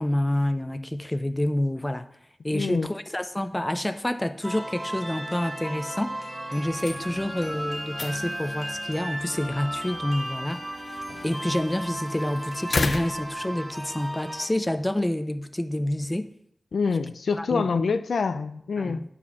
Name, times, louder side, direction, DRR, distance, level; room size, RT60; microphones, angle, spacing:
voice 1, 0.0-2.1 2.4-6.2 6.5-11.0 11.2-16.3 17.4-17.7 18.8-19.0, left 1 dB, 15° left, 0.5 m, -28 dB
voice 2, 2.5-2.9 16.7-19.0, left 5 dB, 90° left, 0.5 m, -26 dB
sound 1, 4.4-14.5, right 1 dB, 15° right, 1.8 m, -35 dB
sound 2, 6.6-14.1, left 3 dB, 50° left, 0.7 m, -36 dB
9.6 x 5.0 x 7.0 m
wide cardioid pair, 120°, 0 cm